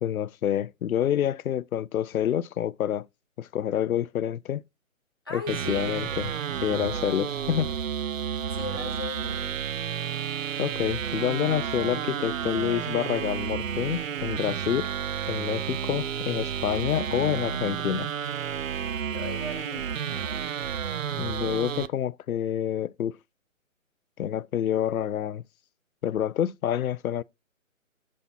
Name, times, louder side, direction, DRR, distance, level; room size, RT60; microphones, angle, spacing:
voice 1, 0.0-3.1 3.4-4.6 5.3-6.3 6.6-7.7 10.6-14.9 15.3-18.1 21.2-23.1 24.2-25.4 26.0-27.2, left 10 dB, 90° left, 0.5 m, -28 dB
voice 2, 5.3-6.1 8.4-9.5 19.1-20.5, left 2 dB, 20° left, 0.5 m, -38 dB
sound 1, 5.5-21.9, right 8 dB, 70° right, 0.6 m, -31 dB
7.4 x 4.1 x 5.5 m
hypercardioid pair, 165°, 41 cm